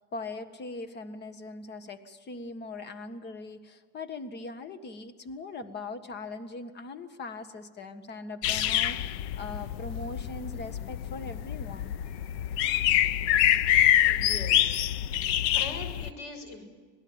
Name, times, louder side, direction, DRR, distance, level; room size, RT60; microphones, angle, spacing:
voice 1, 0.1-11.9, left 3 dB, 35° left, 10 dB, 1.7 m, -40 dB
sound 1, 8.4-16.1, left 11 dB, 80° left, 0.9 m, -26 dB
voice 2, 14.0-14.9 15.5-16.7, left 3 dB, 60° left, 8 dB, 6.5 m, -41 dB
26.5 x 19.0 x 8.9 m, 1.5 s
cardioid pair, 135°, 32 cm